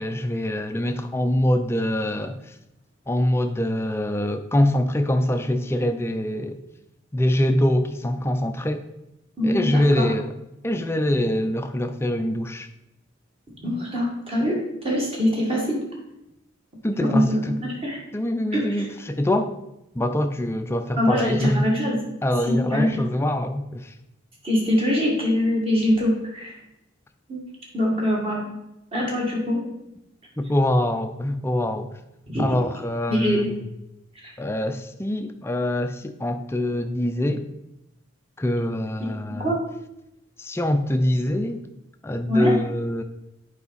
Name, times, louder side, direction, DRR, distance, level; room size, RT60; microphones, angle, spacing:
voice 1, 0.0-2.4 3.1-6.6 7.1-8.9 9.4-10.3 10.6-12.7 16.8-17.6 18.1-19.5 19.9-21.6 22.2-23.9 30.4-31.9 32.4-33.6 34.4-37.5 38.4-39.6 40.4-41.6 42.0-43.0, left 1 dB, 10° left, 0.4 m, -24 dB
voice 2, 9.4-10.1 13.6-14.6 14.8-15.8 17.0-18.0 18.5-18.9 21.0-22.0 22.4-23.0 24.4-26.6 27.3-27.4 27.7-28.5 28.9-29.6 32.3-32.5 33.1-33.5 34.2-34.3 39.4-39.6 42.3-42.5, equal, 30° right, 1.9 m, -23 dB
8.4 x 4.8 x 4.1 m
head